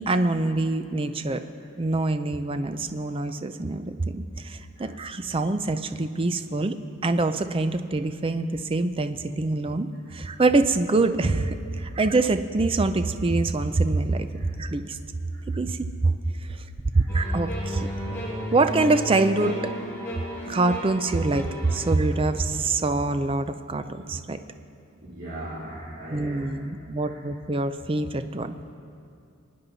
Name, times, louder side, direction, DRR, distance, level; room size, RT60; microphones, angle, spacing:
voice 1, 0.0-1.4 1.8-6.8 7.0-15.0 15.5-16.2 16.5-16.6 16.9-17.9 18.5-19.7 20.5-24.4 26.1-28.6, right 2 dB, 25° right, 9 dB, 0.5 m, -25 dB
sound 1, 17.1-22.0, equal, 10° left, 2.7 m, -33 dB
voice 2, 25.0-26.6 27.0-27.2, right 1 dB, 55° right, -10 dB, 3.3 m, -40 dB
23.5 x 9.5 x 4.1 m, 2.6 s
head